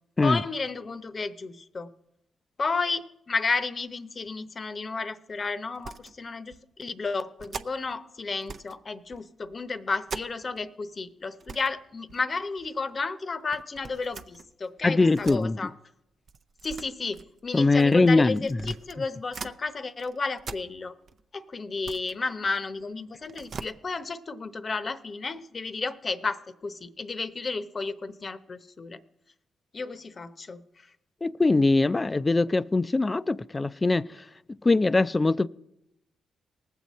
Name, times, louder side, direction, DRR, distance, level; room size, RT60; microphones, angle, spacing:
voice 1, 0.2-1.9 2.6-15.7 16.6-20.9 21.3-29.0 29.7-30.9, left 4 dB, 45° left, 0.8 m, -32 dB
sound 1, 5.7-6.2 6.5-6.6 7.4-8.0 8.4-8.8 9.1-10.7 11.0-11.1 11.3-11.7 12.1-12.7 13.5-15.4 16.3-19.6 20.0-21.2 21.6-22.9 23.2-23.7, right 5 dB, 60° right, 0.6 m, -42 dB
voice 2, 14.8-15.6 17.5-18.4 31.2-34.2 34.6-35.5, left 3 dB, 30° left, 0.4 m, -22 dB
19.5 x 7.6 x 4.1 m
hypercardioid pair, 45°, 0 cm